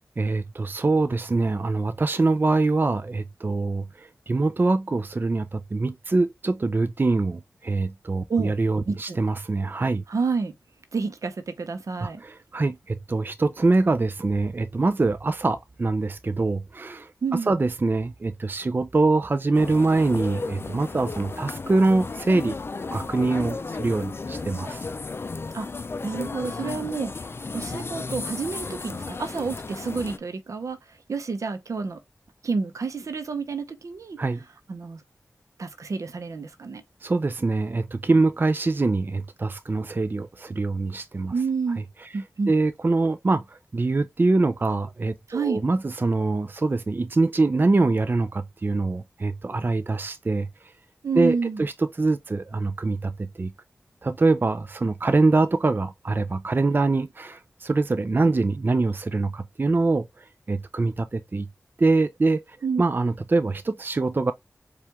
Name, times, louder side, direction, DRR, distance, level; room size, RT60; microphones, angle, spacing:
voice 1, 0.2-10.0 12.0-17.1 17.5-22.6 22.9-24.8 34.2-34.4 37.0-41.3 42.5-50.5 51.2-53.5 54.0-60.1 60.5-61.5 61.8-62.4 62.8-64.3, right 3 dB, 40° right, 0.4 m, -24 dB
voice 2, 8.9-9.2 10.1-10.5 10.9-12.2 17.2-17.5 25.5-25.7 26.0-27.1 27.5-30.8 31.1-32.0 32.4-34.2 34.7-35.0 35.6-36.8 41.3-41.8 42.1-42.5 45.3-45.6 51.0-51.7 62.6-62.8, right 4 dB, 80° right, 0.7 m, -29 dB
sound 1, 19.5-30.2, left 3 dB, 45° left, 0.4 m, -34 dB
4.6 x 2.4 x 3.2 m
cardioid pair, 50°, 5 cm